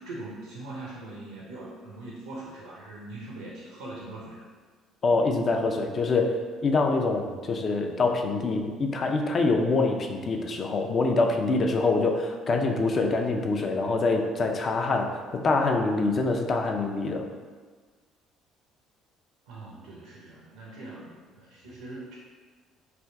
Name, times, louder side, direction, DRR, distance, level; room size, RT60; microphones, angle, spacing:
voice 1, 0.0-4.4 19.5-22.2, right 2 dB, 85° right, -5 dB, 0.7 m, -41 dB
voice 2, 5.0-17.3, left 3 dB, 45° left, 3 dB, 0.5 m, -25 dB
3.4 x 2.6 x 4.5 m, 1.5 s
hypercardioid pair, 60°, 0 cm